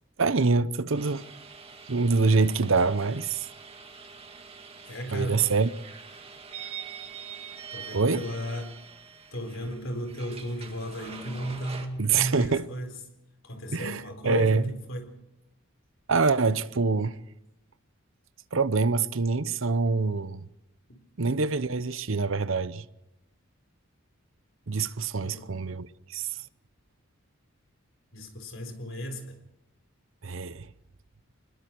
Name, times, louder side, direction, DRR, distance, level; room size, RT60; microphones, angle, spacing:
voice 1, 0.2-1.2 1.9-3.5 5.1-5.7 7.9-8.2 12.0-12.7 13.7-14.6 16.1-17.2 18.5-20.4 21.2-22.8 24.7-26.4 30.2-30.7, right 4 dB, 65° right, 0.8 m, -25 dB
sound 1, 0.9-11.9, right 6 dB, 25° right, 2.1 m, -44 dB
voice 2, 4.8-5.5 7.7-8.8 9.3-12.9 13.4-15.1 20.9-21.0 25.2-25.6 28.1-29.4, equal, 65° left, 4.1 m, -35 dB
26.5 x 21.5 x 4.6 m
head